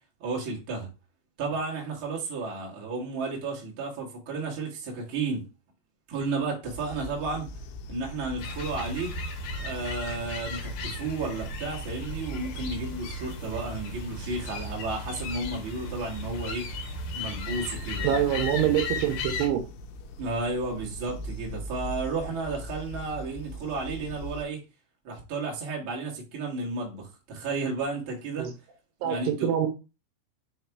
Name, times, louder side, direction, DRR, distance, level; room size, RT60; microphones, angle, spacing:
voice 1, 0.2-0.9 1.4-5.4 6.1-7.5 7.9-9.1 9.6-16.7 17.1-18.3 20.2-24.6 25.0-28.5 29.0-29.5, right 3 dB, 45° right, 1.9 m, -32 dB
sound 1, 6.6-24.4, equal, 90° left, 3.0 m, -41 dB
sound 2, 8.4-19.5, left 2 dB, 70° left, 3.2 m, -36 dB
voice 2, 18.0-19.6 28.4-28.5 29.0-29.7, right 10 dB, 80° right, 2.7 m, -25 dB
6.7 x 3.1 x 4.6 m
omnidirectional pair, 5.0 m